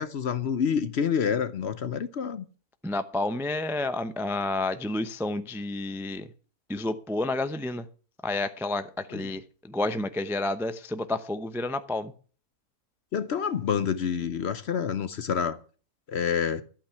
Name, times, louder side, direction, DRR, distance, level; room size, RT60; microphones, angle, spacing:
voice 1, 0.0-2.4 9.1-9.3 13.1-15.6 16.1-16.6, left 7 dB, 55° left, 0.8 m, -28 dB
voice 2, 2.8-6.3 6.7-7.8 8.2-12.1, left 2 dB, 5° right, 0.3 m, -30 dB
12.5 x 8.7 x 5.8 m
omnidirectional pair, 1.6 m